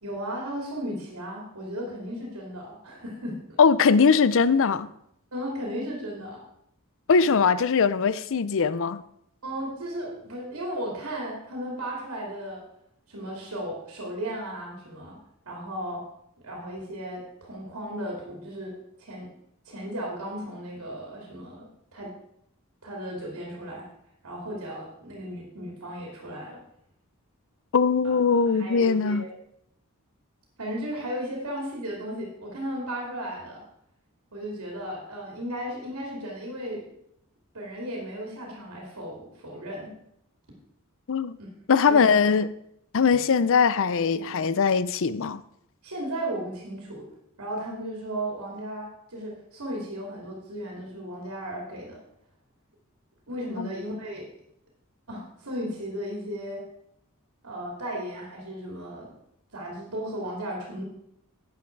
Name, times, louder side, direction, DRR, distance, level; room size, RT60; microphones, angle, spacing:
voice 1, 0.0-3.4 5.3-6.4 9.4-12.6 13.1-15.2 15.4-16.0 16.4-18.7 19.0-19.3 19.6-21.6 21.9-22.1 22.8-23.9 24.2-26.6 28.0-29.3 30.6-33.6 34.3-36.8 37.5-39.9 41.4-41.5 41.8-42.2 45.8-47.0 47.4-52.0 53.3-54.2 55.1-56.6 57.4-59.1 59.5-60.9, equal, 85° right, 2.9 m, -35 dB
voice 2, 3.6-4.9 7.1-9.0 27.7-29.2 41.1-41.4 41.7-42.5 42.9-45.4 53.6-53.7, left 5 dB, 65° left, 0.5 m, -21 dB
11.5 x 8.7 x 4.6 m
head